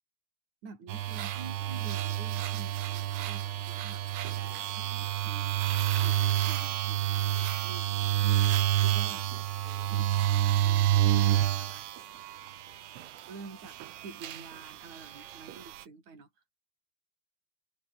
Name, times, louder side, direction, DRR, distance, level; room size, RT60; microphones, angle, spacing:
voice 1, 0.6-8.1 8.7-9.3 9.6-10.1 10.6-11.8 13.3-16.3, right 4 dB, 35° right, 7.9 m, -49 dB
sound 1, 0.9-13.3 13.6-15.8, right 12 dB, 85° right, 4.6 m, -29 dB
omnidirectional pair, 5.7 m